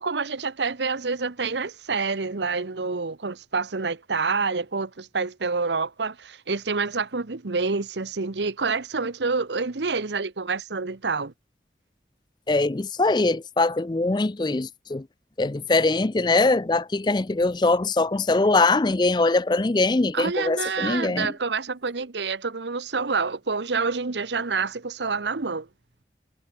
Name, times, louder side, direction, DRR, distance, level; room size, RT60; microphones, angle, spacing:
voice 1, 0.0-11.3 20.1-25.7, right 4 dB, 85° right, 1.0 m, -27 dB
voice 2, 12.5-15.1 15.4-21.3, left 3 dB, 25° left, 0.4 m, -22 dB
head